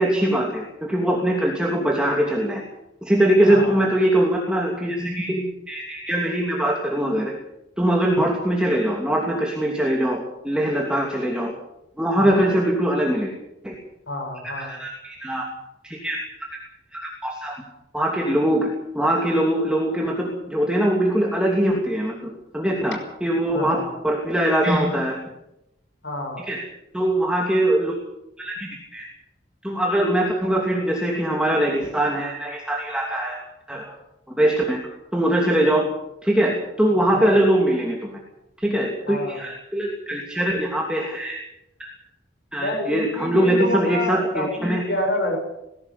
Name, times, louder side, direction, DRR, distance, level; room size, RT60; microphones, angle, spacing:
voice 1, 0.0-2.6 3.0-7.3 7.8-11.5 12.0-13.3 13.6-13.7 14.4-15.5 15.8-16.5 16.9-17.6 17.9-25.2 26.4-26.6 26.9-27.9 28.4-29.1 29.6-33.4 33.7-33.9 34.3-34.8 35.1-35.9 36.2-38.1 38.6-41.4 41.8-41.9 42.5-44.8, right 1 dB, 5° right, -1 dB, 2.9 m, -22 dB
voice 2, 3.5-3.8 12.2-12.5 14.1-14.7 23.5-23.9 26.0-26.4 30.0-30.2 37.1-37.3 39.1-39.4 42.6-45.4, left 1 dB, 75° left, 4 dB, 6.0 m, -28 dB
20.5 x 16.0 x 8.4 m, 0.87 s
head